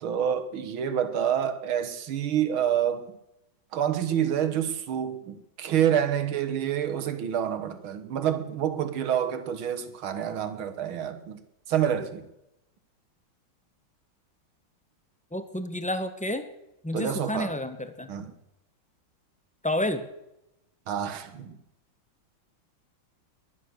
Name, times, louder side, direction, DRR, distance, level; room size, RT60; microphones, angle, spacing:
voice 1, 0.0-3.1 3.7-11.4 11.7-12.2 16.9-17.5 18.1-18.3 20.9-21.6, right 9 dB, 80° right, 2.1 m, -28 dB
voice 2, 15.3-16.4 16.8-18.1 19.6-20.0, left 1 dB, 5° left, 0.6 m, -30 dB
21.5 x 9.7 x 6.4 m
omnidirectional pair, 2.2 m